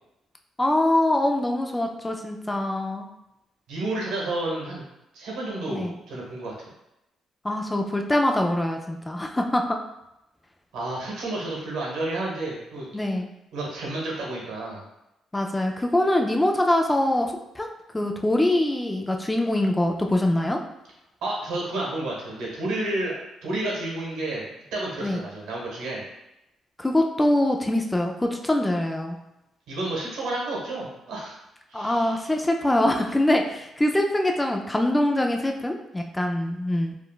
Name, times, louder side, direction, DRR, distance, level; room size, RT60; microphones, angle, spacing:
voice 1, 0.6-3.1 5.7-5.9 7.4-9.8 12.9-13.3 15.3-17.7 17.9-20.6 25.0-25.2 26.8-29.2 31.7-37.0, left 1 dB, 15° left, 2 dB, 0.3 m, -24 dB
voice 2, 3.7-4.8 5.1-6.5 10.7-12.9 13.5-14.8 21.2-23.2 23.4-26.0 29.7-31.3 31.7-32.2, right 2 dB, 85° right, -3 dB, 1.1 m, -30 dB
3.6 x 2.3 x 2.3 m, 0.89 s
cardioid pair, 90°, 0 cm